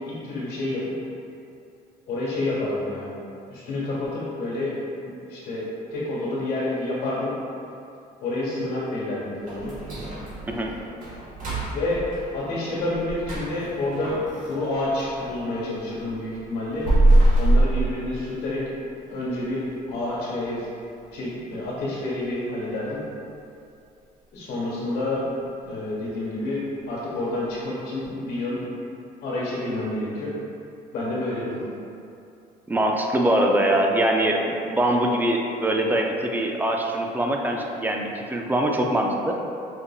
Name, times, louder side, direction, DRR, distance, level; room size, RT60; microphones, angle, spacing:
voice 1, 0.1-0.8 2.1-3.1 3.5-4.7 5.0-7.3 8.2-9.7 11.7-12.0 12.3-14.2 14.4-16.9 17.4-18.6 19.1-19.6 19.9-20.7 21.1-23.0 24.3-25.2 25.6-28.6 29.2-30.3 30.9-31.6, left 2 dB, 70° left, -7 dB, 1.4 m, -29 dB
sound 1, 9.5-15.4 15.8-18.6 19.0-19.1 19.6-19.7 20.2-20.5 20.8-20.9 21.5-21.6, right 1 dB, 50° right, 1.3 m, -24 dB
voice 2, 32.7-39.4, right 1 dB, 10° right, 1 dB, 0.3 m, -23 dB
5.2 x 2.5 x 2.3 m, 2.6 s
cardioid pair, 110°, 17 cm